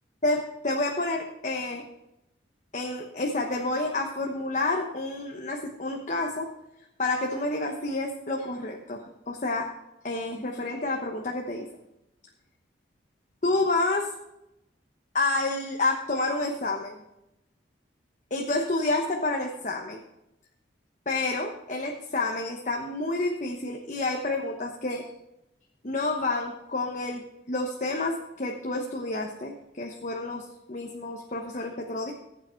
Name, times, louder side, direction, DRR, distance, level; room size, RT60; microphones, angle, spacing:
voice 1, 0.2-1.8 2.7-6.5 7.0-9.7 10.0-11.7 13.4-14.1 15.1-16.9 18.3-20.0 21.1-25.0 25.8-32.1, left 2 dB, 40° left, 1 dB, 1.0 m, -29 dB
15.0 x 8.6 x 4.5 m, 0.88 s
head